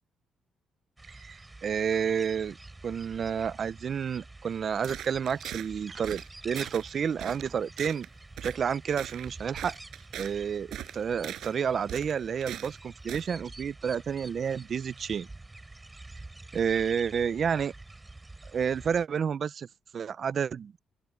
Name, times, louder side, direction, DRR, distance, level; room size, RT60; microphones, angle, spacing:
sound 1, 1.0-19.1, right 2 dB, 15° right, 3.8 m, -48 dB
voice 1, 1.2-2.6 2.8-8.1 8.4-9.8 10.2-15.3 16.5-17.7 18.5-19.7 19.9-20.7, right 7 dB, 50° right, 0.6 m, -30 dB
sound 2, 4.8-5.7 6.0-6.3 6.5-6.9 7.2-7.5 7.8-8.1 8.4-8.6 8.9-10.3 10.7-11.5 11.9-12.8 13.1-13.3, right 12 dB, 80° right, 5.9 m, -40 dB
open air
cardioid pair, 90°, 0 cm